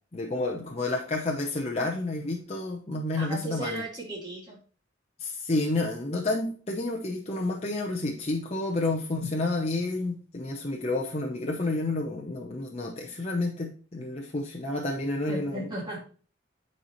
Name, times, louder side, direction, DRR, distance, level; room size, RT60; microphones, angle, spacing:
voice 1, 0.1-3.9 5.2-15.7, left 2 dB, 35° left, 0 dB, 0.8 m, -30 dB
voice 2, 3.2-4.6 15.3-16.0, right 2 dB, 20° right, -3 dB, 2.3 m, -35 dB
9.6 x 4.3 x 3.0 m, 0.40 s
head